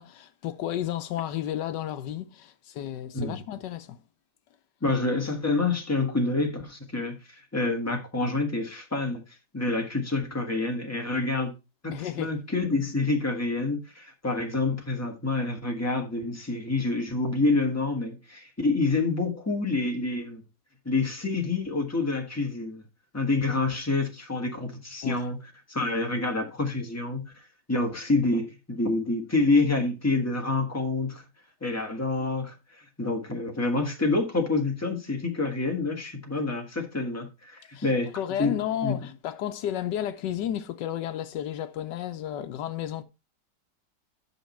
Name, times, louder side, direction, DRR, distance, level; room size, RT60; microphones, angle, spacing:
voice 1, 0.0-4.0 11.9-12.4 25.0-25.3 37.7-37.9 38.1-43.0, left 11 dB, 80° left, 1.3 m, -32 dB
voice 2, 4.8-9.2 9.5-11.5 11.8-20.4 20.8-22.8 23.1-25.4 25.7-27.3 27.7-31.2 31.6-38.1 38.4-38.6 38.8-38.9, left 3 dB, 10° left, 1.4 m, -27 dB
8.4 x 5.8 x 4.4 m
omnidirectional pair, 1.9 m